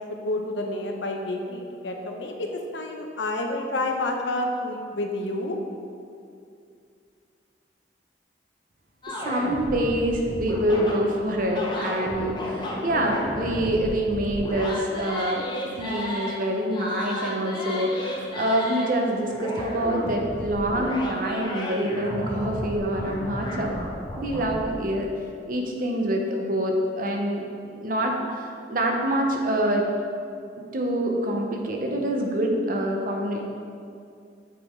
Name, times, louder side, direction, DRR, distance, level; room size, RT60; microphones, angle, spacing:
voice 1, 0.0-5.6, left 2 dB, 85° left, 2 dB, 0.8 m, -29 dB
sound 1, 9.0-16.4 16.7-18.9 19.3-24.7, left 1 dB, 25° left, 0.8 m, -33 dB
voice 2, 9.1-15.4 15.8-23.7 24.2-25.1 25.5-29.9 30.7-33.5, right 1 dB, 50° right, 1 dB, 0.8 m, -26 dB
8.4 x 3.9 x 4.5 m, 2.4 s
head